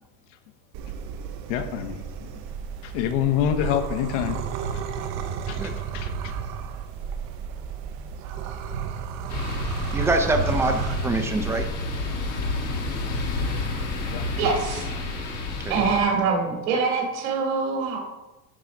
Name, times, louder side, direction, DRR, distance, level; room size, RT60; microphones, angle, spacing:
sound 1, 0.7-11.6, right 7 dB, 45° right, 0.8 m, -32 dB
voice 1, 1.5-2.3 2.8-4.4 4.7-4.8 5.5-6.1 14.1-14.2, left 9 dB, 65° left, 7 dB, 1.1 m, -27 dB
sound 2, 9.3-16.0, left 2 dB, 40° left, 2.2 m, -30 dB
voice 2, 9.9-11.6 15.6-15.8, right 2 dB, 5° right, 5 dB, 0.6 m, -25 dB
voice 3, 14.4-14.9 15.7-18.0, right 4 dB, 85° right, 0 dB, 2.8 m, -24 dB
11.5 x 3.9 x 5.9 m, 1.1 s
cardioid pair, 165°, 39 cm